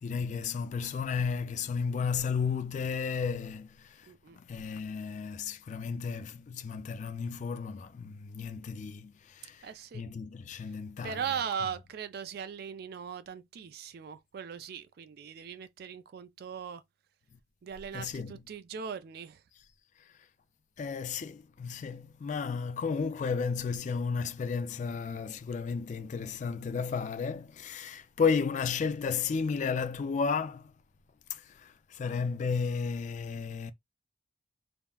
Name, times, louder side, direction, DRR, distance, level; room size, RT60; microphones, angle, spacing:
voice 1, 0.0-11.2 17.9-18.4 20.8-30.7 31.3-33.7, left 5 dB, 40° left, 0.3 m, -33 dB
voice 2, 4.1-4.4 9.6-10.0 11.0-16.8 17.6-19.4, right 7 dB, 60° right, 0.3 m, -39 dB
3.4 x 2.0 x 2.3 m
head